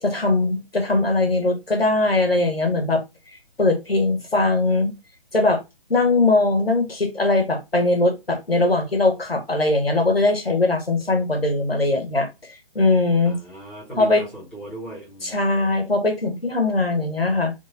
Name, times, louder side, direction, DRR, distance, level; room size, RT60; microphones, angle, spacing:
voice 1, 0.0-3.0 3.6-4.9 5.3-5.6 5.9-13.4 14.0-14.2 15.2-17.5, left 2 dB, 80° left, 1.3 m, -20 dB
voice 2, 13.2-15.4, right 2 dB, 5° left, 1.0 m, -37 dB
3.6 x 2.7 x 3.7 m
figure-of-eight pair, 145°, 29 cm